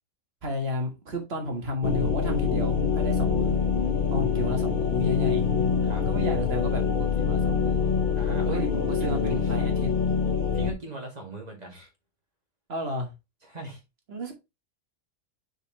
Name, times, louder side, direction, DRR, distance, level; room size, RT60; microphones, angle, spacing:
voice 1, 0.4-3.6 4.1-5.5 6.1-7.8 8.4-9.9 12.7-13.1 14.1-14.3, left 1 dB, 45° right, 1.9 m, -32 dB
sound 1, 1.8-10.7, left 6 dB, 40° left, 0.9 m, -25 dB
voice 2, 4.3-4.8 5.8-6.1 8.2-8.7 9.0-9.5 10.5-11.9 13.4-13.8, right 3 dB, 30° right, 2.2 m, -39 dB
6.7 x 4.4 x 3.2 m
omnidirectional pair, 1.5 m